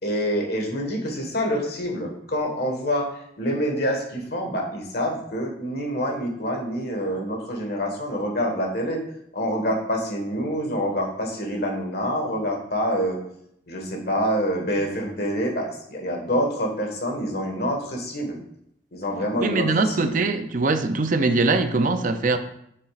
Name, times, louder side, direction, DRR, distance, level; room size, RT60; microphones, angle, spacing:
voice 1, 0.0-3.1 3.4-9.0 9.3-13.2 13.7-18.4 18.9-20.1, equal, 60° left, 1 dB, 1.6 m, -26 dB
voice 2, 19.3-22.4, right 3 dB, 45° right, 8 dB, 0.6 m, -22 dB
7.0 x 6.6 x 2.5 m, 0.73 s
head